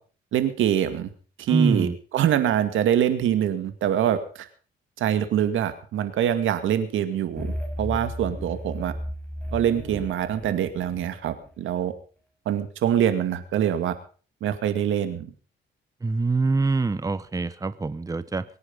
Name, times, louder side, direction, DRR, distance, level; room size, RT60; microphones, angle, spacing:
voice 1, 0.3-1.1 1.4-4.5 5.0-8.9 9.5-11.9 12.5-14.0 14.4-15.3, right 10 dB, 80° right, 2.2 m, -24 dB
voice 2, 1.5-1.9 16.0-18.4, right 3 dB, 15° right, 0.9 m, -25 dB
sound 1, 7.4-11.5, equal, 5° left, 5.7 m, -34 dB
23.0 x 9.9 x 5.4 m
cardioid pair, 90°, 20 cm